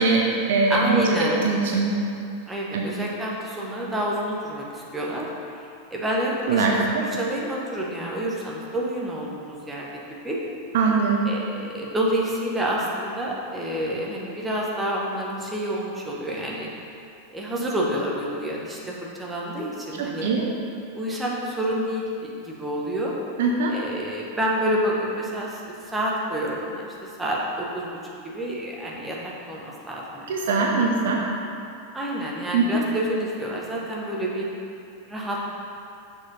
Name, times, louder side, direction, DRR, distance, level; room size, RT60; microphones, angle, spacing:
voice 1, 0.0-2.0 2.7-2.9 6.5-7.0 10.7-11.2 20.2-20.5 23.4-23.7 30.3-31.2 32.5-32.6, right 4 dB, 55° right, -1 dB, 0.7 m, -22 dB
voice 2, 0.7-1.4 2.5-5.3 5.9-10.4 11.2-16.7 17.3-18.9 19.2-20.3 20.9-23.1 23.7-25.6 25.9-28.0 28.2-30.3 30.7-30.9 31.9-34.5 35.1-35.4, right 1 dB, 10° right, -4 dB, 1.2 m, -28 dB
6.4 x 4.6 x 5.3 m, 2.5 s
figure-of-eight pair, 90°, 0 cm